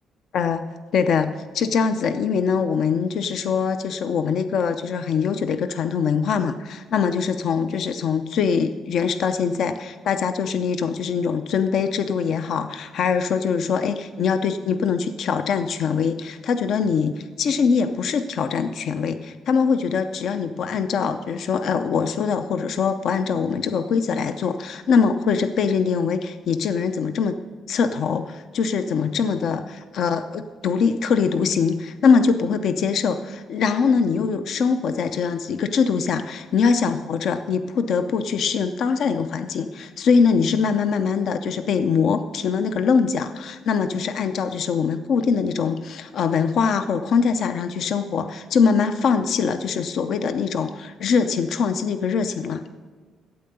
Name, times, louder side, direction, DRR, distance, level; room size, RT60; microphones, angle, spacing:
voice 1, 0.3-27.4 27.7-52.6, left 6 dB, 60° left, 10 dB, 0.6 m, -23 dB
12.5 x 8.6 x 6.7 m, 1.4 s
cardioid pair, 145°, 0 cm